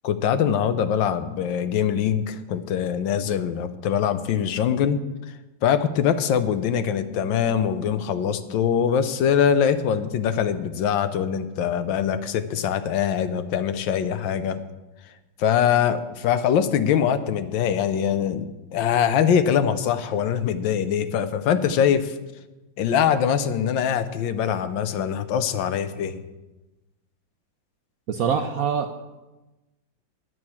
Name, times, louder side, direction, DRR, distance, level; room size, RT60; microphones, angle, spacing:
voice 1, 0.0-5.0 5.6-14.6 15.4-22.1 22.8-26.2, left 8 dB, 80° left, 11 dB, 1.4 m, -23 dB
voice 2, 28.1-29.0, right 7 dB, 65° right, 6 dB, 0.9 m, -24 dB
9.5 x 6.2 x 8.6 m, 1.1 s
omnidirectional pair, 2.1 m